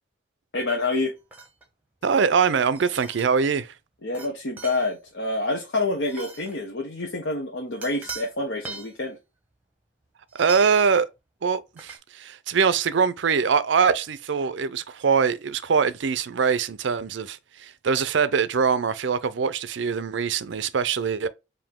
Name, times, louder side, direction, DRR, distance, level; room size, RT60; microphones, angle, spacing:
voice 1, 0.5-1.1 4.0-9.2, left 2 dB, 65° left, 0.9 m, -27 dB
sound 1, 1.3-1.6 2.7-3.3 4.1-4.3 4.6-4.9 6.1-6.6 7.8-8.3 8.6-8.9 10.3-10.9 11.8-12.0, right 4 dB, 10° right, 0.9 m, -39 dB
voice 2, 2.0-3.7 10.3-11.1 11.4-21.3, right 6 dB, 65° right, 0.4 m, -23 dB
4.9 x 2.7 x 3.5 m
head